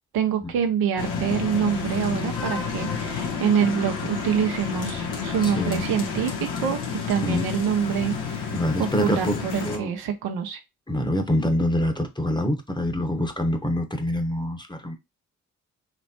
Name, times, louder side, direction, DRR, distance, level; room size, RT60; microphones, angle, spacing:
voice 1, 0.1-6.8 7.1-10.6, right 8 dB, 70° right, 1.0 m, -26 dB
sound 1, 1.0-9.8, left 6 dB, 75° left, 1.5 m, -30 dB
voice 2, 5.4-5.9 7.2-7.4 8.5-9.9 10.9-14.9, left 1 dB, 10° left, 1.2 m, -25 dB
4.2 x 3.0 x 2.8 m
hypercardioid pair, 50°, 37 cm